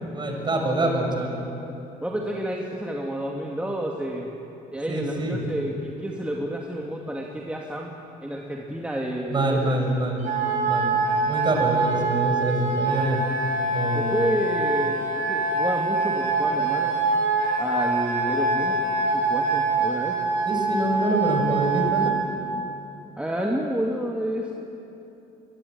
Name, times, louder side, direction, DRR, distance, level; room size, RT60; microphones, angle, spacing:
voice 1, 0.1-1.5 4.9-5.4 9.3-10.2 10.7-10.9 11.2-13.2 13.7-14.2 20.5-22.1, right 1 dB, 25° right, 2 dB, 6.3 m, -25 dB
voice 2, 2.0-4.3 4.7-7.9 8.2-10.0 13.9-17.0 17.6-20.2 23.2-24.5, right 1 dB, 5° right, -1 dB, 2.4 m, -29 dB
Wind instrument woodwind instrument, 10.2-22.3, right 3 dB, 50° right, 6.1 m, -24 dB
25.0 x 20.5 x 9.6 m, 2.9 s
cardioid pair, 110°, 17 cm